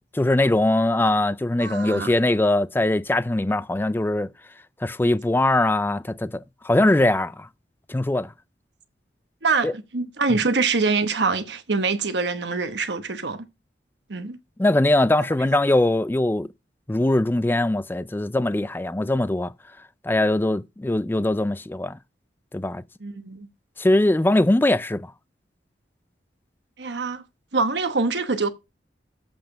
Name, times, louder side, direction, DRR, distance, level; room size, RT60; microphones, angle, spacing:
voice 1, 0.1-4.3 4.8-7.5 7.9-8.3 9.6-9.7 14.6-16.5 16.9-19.5 20.0-22.0 22.5-22.8 23.8-25.1, left 1 dB, 10° left, 0.4 m, -21 dB
voice 2, 1.6-2.1 9.4-13.5 14.1-14.4 23.0-23.5 26.8-27.2 27.5-28.5, right 4 dB, 80° right, 1.1 m, -24 dB
7.9 x 5.3 x 5.7 m
head